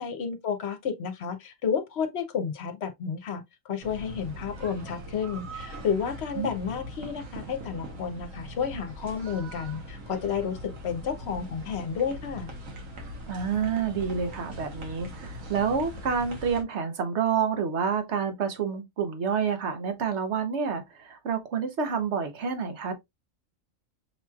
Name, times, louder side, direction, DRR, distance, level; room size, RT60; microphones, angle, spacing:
voice 1, 0.0-12.5, left 7 dB, 60° left, 1.0 m, -31 dB
sound 1, 3.8-16.6, equal, 85° right, 1.5 m, -41 dB
voice 2, 13.3-22.9, right 6 dB, 60° right, 1.2 m, -28 dB
6.2 x 3.0 x 2.3 m
omnidirectional pair, 1.3 m